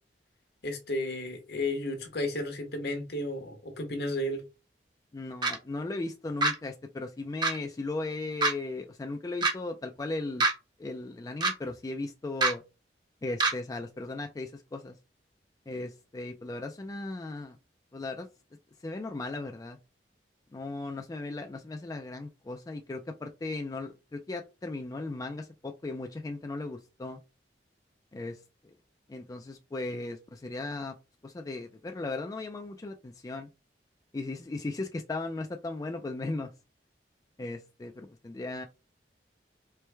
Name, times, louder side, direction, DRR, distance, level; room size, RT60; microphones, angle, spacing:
voice 1, 0.6-4.4, left 1 dB, 65° left, 1.0 m, -33 dB
voice 2, 5.1-10.5 10.8-12.6 13.2-15.0 15.7-17.6 17.9-18.3 18.8-19.8 20.5-27.2 28.1-28.4 29.1-30.9 31.2-33.5 34.1-36.5 37.4-38.7, left 2 dB, 20° left, 0.3 m, -37 dB
sound 1, 5.4-5.6 6.4-6.6 7.4-7.6 8.4-8.5 9.4-9.5 10.4-10.5 11.4-11.5 12.4-12.5 13.4-13.5, right 2 dB, 25° right, 0.7 m, -24 dB
4.5 x 2.2 x 3.3 m
head